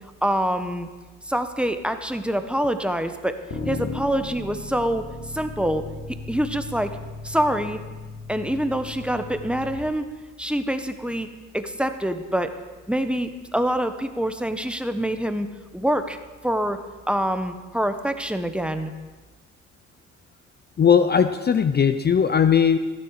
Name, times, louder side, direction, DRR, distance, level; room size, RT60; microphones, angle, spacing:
voice 1, 0.2-0.9 1.2-3.4 3.7-5.8 6.3-7.0 7.2-7.8 8.3-10.1 10.4-11.3 11.5-12.5 12.9-15.5 15.7-16.2 16.4-16.8 17.1-18.9, equal, 5° right, 8 dB, 1.0 m, -25 dB
sound 1, 3.5-9.8, left 3 dB, 60° left, 3.3 m, -36 dB
voice 2, 20.8-22.8, left 7 dB, 35° left, 10 dB, 0.6 m, -18 dB
15.0 x 11.5 x 4.9 m, 1.3 s
cardioid pair, 90°, 30 cm